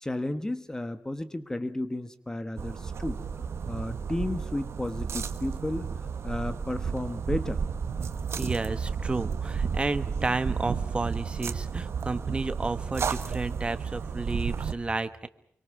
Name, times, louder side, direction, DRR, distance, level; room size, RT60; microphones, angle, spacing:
voice 1, 0.0-3.2 3.7-7.6, left 1 dB, 15° left, 11 dB, 1.2 m, -33 dB
sound 1, 2.6-14.7, right 6 dB, 70° right, 1.3 m, -32 dB
voice 2, 8.4-15.3, right 3 dB, 25° right, 11 dB, 1.4 m, -31 dB
26.5 x 24.5 x 6.0 m, 0.67 s
wide cardioid pair, 170°, 5 cm